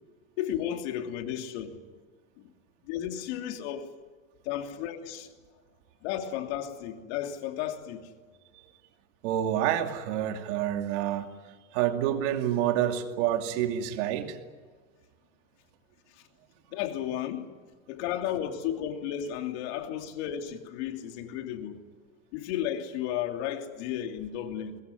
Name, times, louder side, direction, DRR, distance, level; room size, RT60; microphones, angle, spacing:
voice 1, 0.4-1.8 2.4-2.5 2.8-3.9 4.4-5.3 6.0-8.1 16.7-17.5 17.9-21.8 22.3-24.8, left 10 dB, 60° left, 3.0 m, -33 dB
voice 2, 9.2-11.3 11.7-14.4, right 11 dB, 65° right, 2.7 m, -28 dB
23.0 x 21.0 x 9.6 m
supercardioid pair, 140°, 38 cm